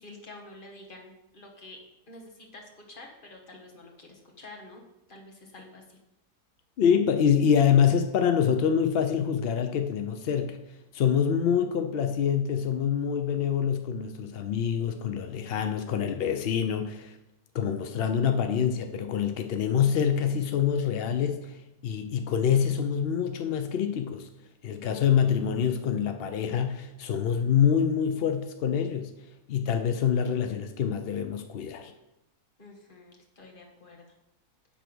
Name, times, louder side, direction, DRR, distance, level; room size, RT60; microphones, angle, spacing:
voice 1, 0.0-1.8 2.1-4.8 5.1-6.0 32.6-34.0, left 2 dB, 35° left, 1 dB, 1.4 m, -48 dB
voice 2, 6.8-10.6 10.9-17.1 17.5-21.5 21.8-24.3 24.6-29.1 29.5-31.9, left 8 dB, 75° left, 6 dB, 0.5 m, -26 dB
9.9 x 3.5 x 6.2 m, 0.92 s
omnidirectional pair, 1.7 m